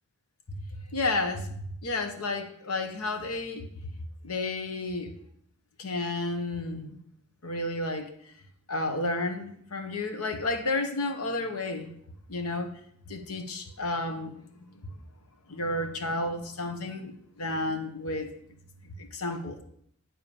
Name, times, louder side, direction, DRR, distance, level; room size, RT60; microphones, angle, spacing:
voice 1, 0.9-3.7 4.2-5.1 5.8-7.0 7.4-8.1 8.7-11.9 12.3-12.7 13.1-14.9 15.5-18.3 18.8-19.6, left 2 dB, 75° left, 6 dB, 1.0 m, -32 dB
8.4 x 3.8 x 6.9 m, 0.67 s
head